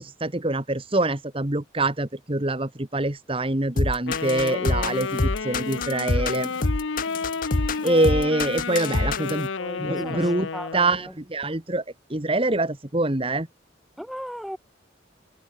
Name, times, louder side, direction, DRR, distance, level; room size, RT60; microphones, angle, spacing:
voice 1, 0.0-6.5 7.8-9.5 9.8-11.8 12.1-13.5, right 2 dB, 30° right, 1.6 m, -25 dB
sound 1, 3.8-9.4, left 2 dB, 45° left, 1.0 m, -25 dB
Wind instrument woodwind instrument, 4.1-11.0, left 4 dB, 75° left, 0.8 m, -31 dB
voice 2, 9.6-11.1 14.0-14.6, equal, ahead, 3.4 m, -37 dB
head